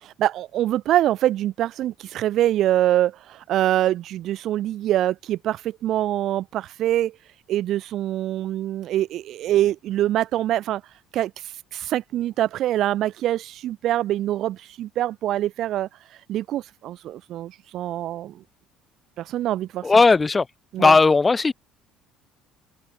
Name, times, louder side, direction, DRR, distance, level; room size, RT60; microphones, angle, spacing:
voice 1, 0.0-7.2 7.5-10.8 11.1-15.9 16.3-18.4 19.2-19.9 20.7-21.0, right 13 dB, 50° right, 1.3 m, -24 dB
voice 2, 19.8-20.5 20.8-21.5, left 4 dB, 15° left, 0.4 m, -16 dB
open air
cardioid pair, 170°, 0 cm